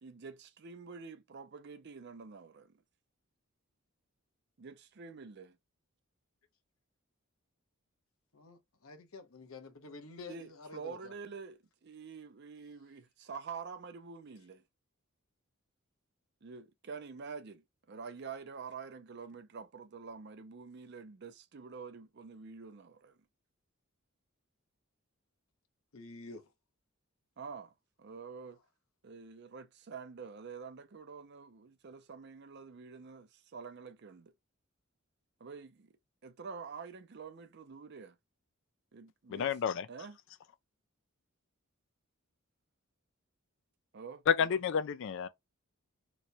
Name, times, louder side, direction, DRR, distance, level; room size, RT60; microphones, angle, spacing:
voice 1, 0.0-2.8 4.6-5.6 10.3-14.6 16.4-23.2 27.4-27.7 28.0-28.6 29.0-34.3 35.4-35.9 36.2-38.2 38.9-39.5 39.9-40.2 43.9-44.2 44.5-44.6, right 5 dB, 50° right, 0.5 m, -47 dB
voice 2, 8.3-11.1 25.9-26.4, left 3 dB, 75° left, 0.8 m, -49 dB
voice 3, 39.3-39.9 44.3-45.3, left 7 dB, 60° left, 0.3 m, -30 dB
3.0 x 2.2 x 4.0 m
head